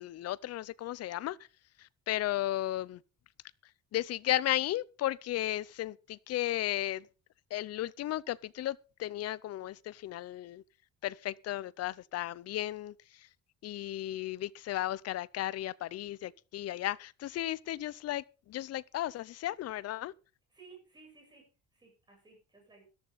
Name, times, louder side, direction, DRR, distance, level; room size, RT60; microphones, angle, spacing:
voice 1, 0.0-1.4 1.8-3.0 3.9-7.1 7.5-10.6 11.0-13.3 13.6-20.1, left 14 dB, 50° left, 0.6 m, -35 dB
voice 2, 20.5-22.8, right 4 dB, 15° right, 8.0 m, -57 dB
14.0 x 13.0 x 4.0 m
cardioid pair, 165°, 32 cm